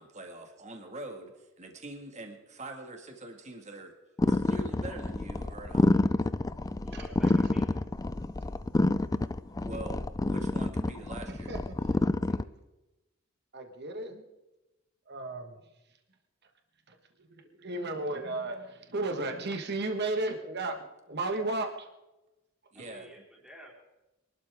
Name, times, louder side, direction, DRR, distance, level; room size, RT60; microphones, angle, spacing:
voice 1, 0.0-3.9 4.3-5.9 9.6-11.5 14.1-14.2 22.7-23.1, right 2 dB, 35° right, 4 dB, 1.9 m, -44 dB
sound 1, 4.2-12.4, left 2 dB, 15° left, 0.4 m, -28 dB
voice 2, 6.8-7.6 22.8-23.7, right 1 dB, 5° right, -3 dB, 3.9 m, -51 dB
voice 3, 13.5-14.1 15.1-15.6 16.9-17.0 17.6-21.9, right 2 dB, 55° right, 5 dB, 1.5 m, -34 dB
23.5 x 12.5 x 3.6 m, 1.0 s
head